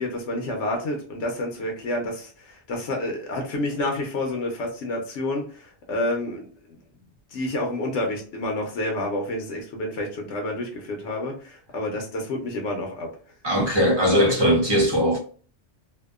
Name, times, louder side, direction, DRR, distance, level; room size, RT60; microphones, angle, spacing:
voice 1, 0.0-6.8 7.3-13.1, left 1 dB, 90° left, 1.0 m, -29 dB
voice 2, 13.4-15.2, equal, 25° right, 0.7 m, -20 dB
2.7 x 2.1 x 2.3 m
omnidirectional pair, 1.2 m